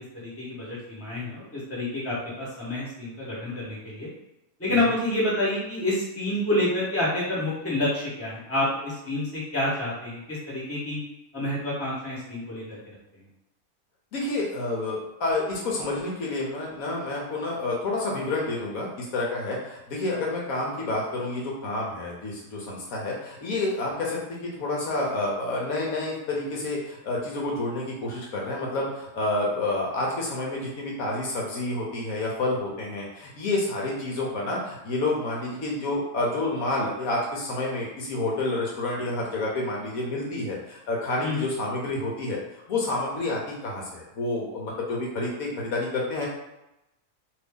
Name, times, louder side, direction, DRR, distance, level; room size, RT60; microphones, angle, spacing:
voice 1, 0.1-4.1 4.6-11.0 11.3-13.0 41.2-41.5, left 1 dB, 10° left, -7 dB, 1.0 m, -28 dB
voice 2, 14.1-42.4 42.7-46.3, left 2 dB, 70° left, -3 dB, 1.1 m, -29 dB
2.7 x 2.7 x 3.5 m, 0.90 s
omnidirectional pair, 1.6 m